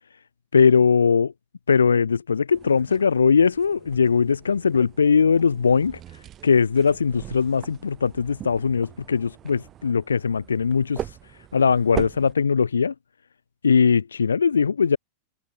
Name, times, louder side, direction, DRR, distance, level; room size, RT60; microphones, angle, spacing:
voice 1, 0.5-1.3 1.7-6.0 6.4-11.2 11.5-12.9 13.6-15.0, left 6 dB, 75° left, 0.3 m, -20 dB
sound 1, 2.5-12.3, right 11 dB, 30° right, 1.8 m, -40 dB
open air
figure-of-eight pair, 90°, 0 cm